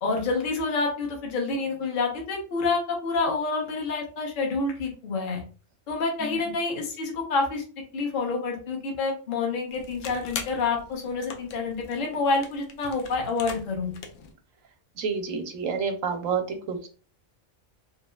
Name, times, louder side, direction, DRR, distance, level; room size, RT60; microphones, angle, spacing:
voice 1, 0.0-5.4 5.9-7.6 7.9-14.0, left 3 dB, 45° left, 1 dB, 0.8 m, -28 dB
sound 1, 9.7-14.3, left 5 dB, 75° left, 0.9 m, -41 dB
voice 2, 15.0-16.9, right 5 dB, 90° right, 6 dB, 1.0 m, -29 dB
3.1 x 2.8 x 2.2 m, 0.37 s
omnidirectional pair, 1.3 m